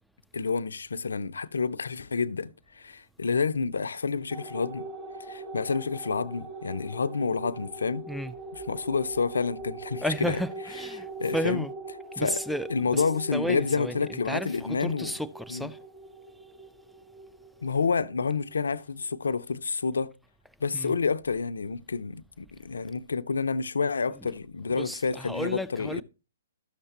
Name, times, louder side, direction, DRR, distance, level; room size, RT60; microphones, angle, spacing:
voice 1, 0.3-4.9 5.3-8.1 8.5-10.4 11.2-11.7 12.2-12.4 12.7-15.2 15.5-15.7 17.6-20.1 20.6-26.0, left 5 dB, 80° left, 0.4 m, -29 dB
sound 1, 4.3-19.1, right 2 dB, 25° right, 3.0 m, -42 dB
voice 2, 10.0-11.1 11.3-11.7 12.2-13.0 13.3-14.0 14.3-14.5 14.8-15.8 20.7-20.9 24.2-24.3 24.7-26.0, equal, ahead, 0.4 m, -32 dB
12.5 x 6.6 x 2.9 m
hypercardioid pair, 130°, 0 cm